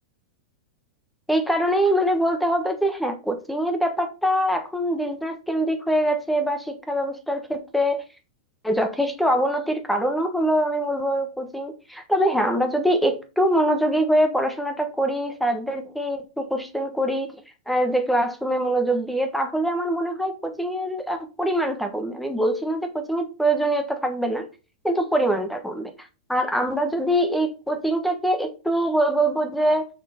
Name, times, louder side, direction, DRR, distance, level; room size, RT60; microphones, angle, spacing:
voice 1, 1.3-8.0 8.6-17.3 17.7-24.5 24.8-25.9 26.3-29.9, right 1 dB, ahead, 6 dB, 1.3 m, -23 dB
6.5 x 6.1 x 4.3 m, 0.33 s
supercardioid pair, 145°, 3 cm